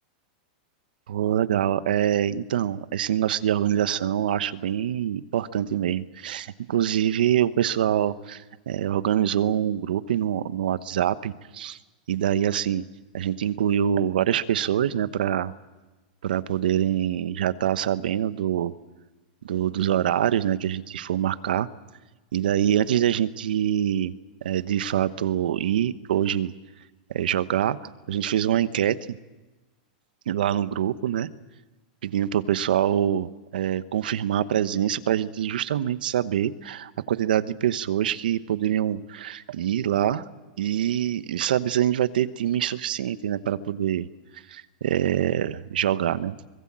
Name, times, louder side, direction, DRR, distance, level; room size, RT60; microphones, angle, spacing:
voice 1, 1.1-11.8 12.1-12.8 13.1-15.5 16.2-18.7 19.4-21.7 22.3-24.1 24.4-26.5 27.1-29.2 30.3-31.3 32.0-40.2 40.6-44.1 44.3-46.4, right 10 dB, 85° right, 14 dB, 1.1 m, -25 dB
24.5 x 21.0 x 7.5 m, 1.2 s
supercardioid pair, 165°, 5 cm